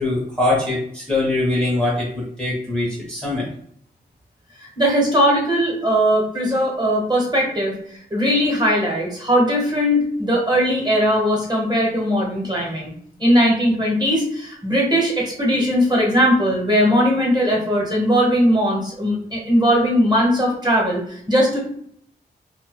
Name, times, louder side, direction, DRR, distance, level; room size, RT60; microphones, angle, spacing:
voice 1, 0.0-3.5, left 2 dB, 5° left, -5 dB, 0.7 m, -22 dB
voice 2, 4.8-12.9 13.2-21.6, equal, 25° right, -3 dB, 1.0 m, -19 dB
2.8 x 2.2 x 3.0 m, 0.66 s
wide cardioid pair, 110°, 17 cm